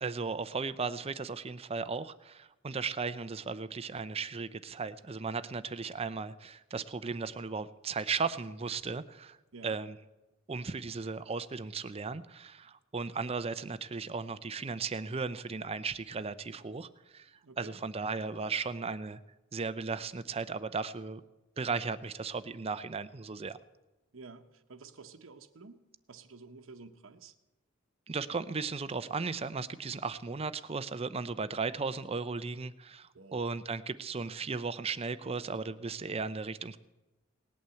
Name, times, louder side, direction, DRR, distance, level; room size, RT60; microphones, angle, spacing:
voice 1, 0.0-9.4 9.6-10.0 10.5-17.3 17.6-19.2 19.5-21.2 21.6-23.6 28.1-36.8, right 4 dB, 30° right, 13 dB, 0.6 m, -36 dB
voice 2, 17.4-17.8 24.1-25.8 26.1-27.3 33.1-33.4, right 4 dB, 90° right, 5 dB, 0.9 m, -51 dB
18.5 x 8.6 x 7.8 m, 1.0 s
head